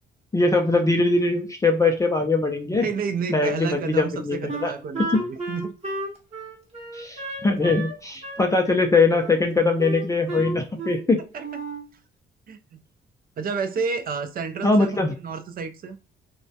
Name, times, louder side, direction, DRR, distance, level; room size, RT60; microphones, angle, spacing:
voice 1, 0.3-2.9 3.3-4.7 6.9-11.2 14.6-15.1, left 3 dB, 15° left, 0.4 m, -21 dB
voice 2, 2.8-5.7 11.3-11.4 12.5-12.8 13.4-16.0, right 5 dB, 45° right, 0.4 m, -30 dB
Wind instrument woodwind instrument, 4.5-8.0 8.2-9.4 9.8-11.1 11.4-11.9, right 2 dB, 30° right, 0.9 m, -33 dB
2.2 x 2.1 x 2.6 m
cardioid pair, 90°, 20 cm